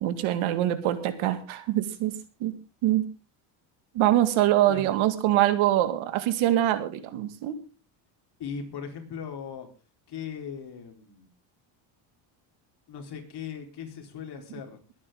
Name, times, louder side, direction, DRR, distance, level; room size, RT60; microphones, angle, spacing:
voice 1, 0.0-2.1 2.4-2.6 2.8-3.0 3.9-7.6, right 13 dB, 75° right, 10 dB, 2.1 m, -24 dB
voice 2, 8.4-9.7 10.1-11.3 12.9-14.8, left 7 dB, 50° left, 3 dB, 4.3 m, -38 dB
22.0 x 9.8 x 3.8 m, 0.32 s
cardioid pair, 110°, 49 cm